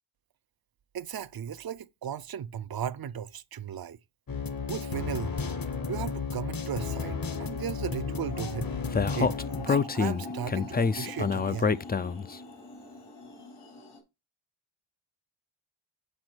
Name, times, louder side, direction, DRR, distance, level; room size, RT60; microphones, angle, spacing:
voice 1, 0.9-4.0 4.7-5.3 5.9-8.7 9.1-11.7, right 8 dB, 50° right, 0.5 m, -36 dB
sound 1, 4.3-9.7, left 5 dB, 45° left, 0.9 m, -33 dB
sound 2, 7.2-14.0, left 2 dB, 80° left, 3.7 m, -44 dB
Speech, 8.9-12.3, left 5 dB, 20° left, 0.3 m, -26 dB
8.0 x 4.7 x 4.4 m
wide cardioid pair, 75°, 50 cm